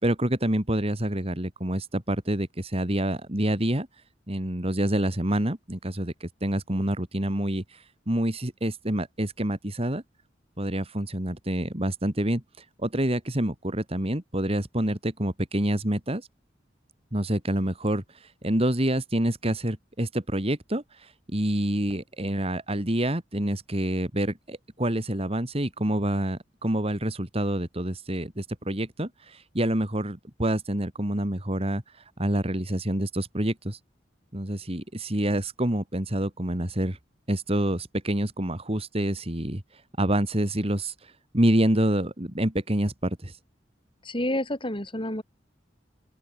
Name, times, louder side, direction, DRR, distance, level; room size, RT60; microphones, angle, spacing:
voice 1, 0.0-3.9 4.3-10.0 10.6-16.3 17.1-31.8 32.2-33.8 34.3-37.0 37.3-39.6 40.0-43.3, right 1 dB, 30° right, 2.8 m, -27 dB
voice 2, 44.0-45.2, left 1 dB, 30° left, 7.4 m, -29 dB
open air
head